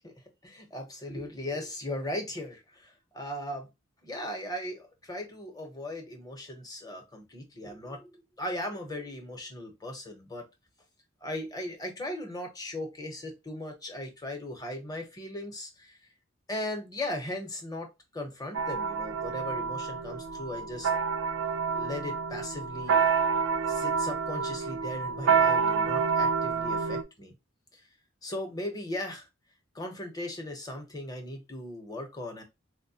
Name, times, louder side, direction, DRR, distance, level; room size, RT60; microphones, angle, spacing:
voice 1, 0.4-3.7 4.0-10.4 11.2-16.0 16.5-20.9 21.7-23.0 23.7-27.3 27.7-27.8 28.2-29.3 29.7-32.4, left 1 dB, 20° left, 0.8 m, -38 dB
sound 1, 18.5-27.0, right 6 dB, 75° right, 0.4 m, -28 dB
4.1 x 2.1 x 2.7 m
head